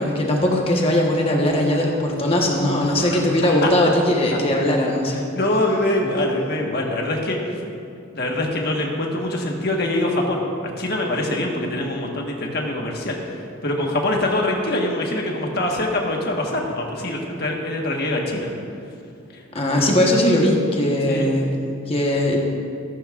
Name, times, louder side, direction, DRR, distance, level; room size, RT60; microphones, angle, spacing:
voice 1, 0.0-5.3 19.5-22.4, left 1 dB, 25° left, -1 dB, 1.2 m, -20 dB
voice 2, 5.3-7.6 8.1-10.4 10.8-18.5 19.3-19.4 21.1-21.3, left 1 dB, 50° left, 0 dB, 1.5 m, -24 dB
14.5 x 14.0 x 2.5 m, 2.5 s
head